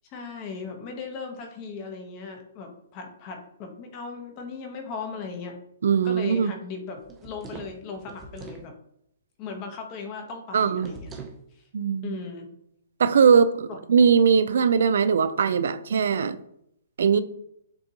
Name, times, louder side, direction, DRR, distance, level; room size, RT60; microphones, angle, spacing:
voice 1, 0.1-5.6 6.0-8.7 9.4-11.2 11.5-11.6 12.0-12.5 13.7-13.8, left 5 dB, 30° left, 4 dB, 0.9 m, -37 dB
voice 2, 5.8-6.5 10.5-10.9 11.7-12.1 13.0-16.4 17.0-17.2, right 6 dB, 70° right, 14 dB, 0.4 m, -20 dB
sound 1, 7.0-8.7 10.8-11.4, right 4 dB, 15° right, 0.5 m, -42 dB
6.9 x 2.5 x 2.8 m, 0.73 s
hypercardioid pair, 150°, 0 cm